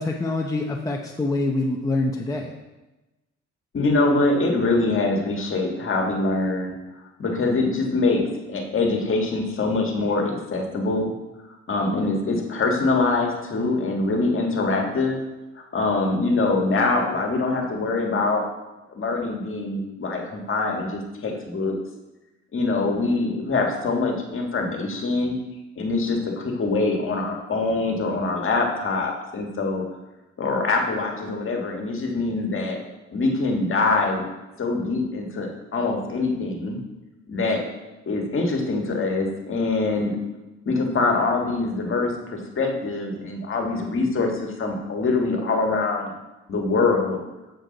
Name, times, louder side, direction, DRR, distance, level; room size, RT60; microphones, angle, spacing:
voice 1, 0.0-2.5, left 2 dB, 10° left, 0 dB, 0.7 m, -25 dB
voice 2, 3.7-6.7 7.2-11.1 11.7-15.2 15.7-18.4 18.9-21.7 22.5-25.4 25.8-29.8 30.4-32.8 33.1-34.2 34.6-36.8 37.3-37.6 38.1-40.2 40.6-46.1 46.5-47.2, left 3 dB, 45° left, 1 dB, 1.6 m, -24 dB
7.4 x 6.7 x 3.9 m, 1.0 s
cardioid pair, 90°, 30 cm